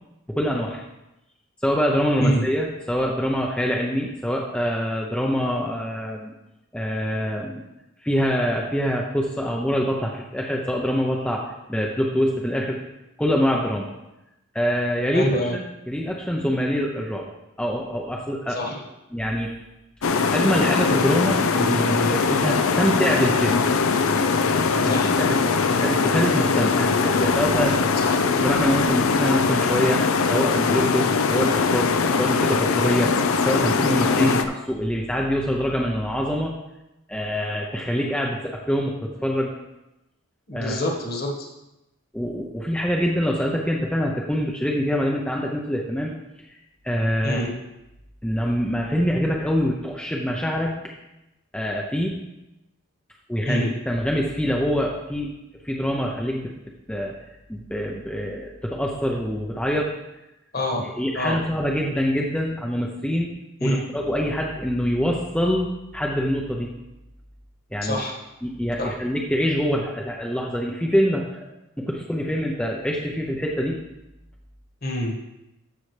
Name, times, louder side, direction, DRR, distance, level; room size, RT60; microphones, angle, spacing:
voice 1, 0.4-0.8 1.6-6.3 6.7-7.6 8.0-12.8 13.2-13.9 14.5-17.3 17.6-18.6 19.1-19.5 20.3-23.6 24.7-31.9 32.2-33.1 33.4-36.5 37.1-39.5 40.5-40.8 42.1-46.1 46.8-47.4 48.2-50.7 51.5-52.2 53.3-55.3 55.6-56.5 56.9-57.2 57.5-59.9 61.0-63.3 63.6-66.7 67.7-68.0 68.4-71.4 71.8-73.8, equal, 5° left, -2 dB, 0.6 m, -25 dB
voice 2, 15.1-15.5 18.5-18.8 24.8-25.1 26.7-27.0 28.0-28.2 34.1-34.4 40.5-41.5 47.2-47.5 53.4-53.7 60.5-60.8 61.1-61.4 63.6-63.8 67.8-68.2 68.8-68.9 74.8-75.2, equal, 45° left, 1 dB, 1.6 m, -26 dB
sound 1, 20.0-34.4, left 4 dB, 75° left, 0.6 m, -21 dB
13.5 x 5.6 x 3.3 m, 0.92 s
head